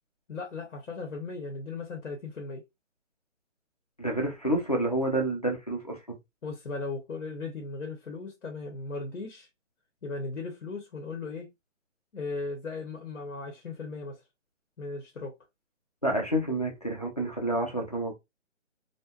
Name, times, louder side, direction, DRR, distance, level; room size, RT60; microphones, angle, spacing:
voice 1, 0.3-2.7 6.4-9.5 10.0-11.5 12.1-14.2 14.8-15.3, left 3 dB, 90° left, 0.9 m, -37 dB
voice 2, 4.0-6.2 16.0-18.1, right 1 dB, 30° left, 0.4 m, -29 dB
2.6 x 2.1 x 2.3 m
hypercardioid pair, 170°, 38 cm